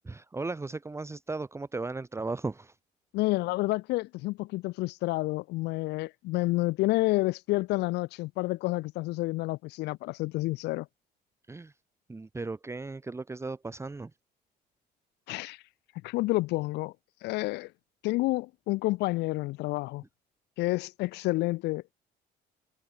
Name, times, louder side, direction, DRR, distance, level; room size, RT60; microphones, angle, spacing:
voice 1, 0.0-2.7 11.5-11.7 12.1-14.1, right 3 dB, 15° right, 1.6 m, -36 dB
voice 2, 3.1-10.9 15.3-15.6 16.0-16.9 17.2-17.7 18.0-20.0 20.6-21.9, left 20 dB, 90° left, 1.2 m, -29 dB
cardioid pair, 110°, 17 cm